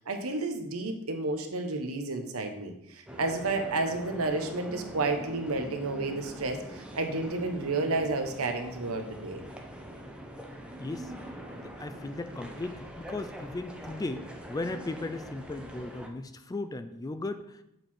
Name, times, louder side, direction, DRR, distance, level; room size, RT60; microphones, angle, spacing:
voice 1, 0.1-9.4, right 3 dB, 70° right, 5 dB, 1.0 m, -31 dB
sound 1, 3.1-16.1, equal, 5° right, 0.7 m, -43 dB
voice 2, 10.8-11.1 11.6-17.6, left 2 dB, 15° left, 11 dB, 0.4 m, -37 dB
7.8 x 4.6 x 4.3 m, 0.80 s
head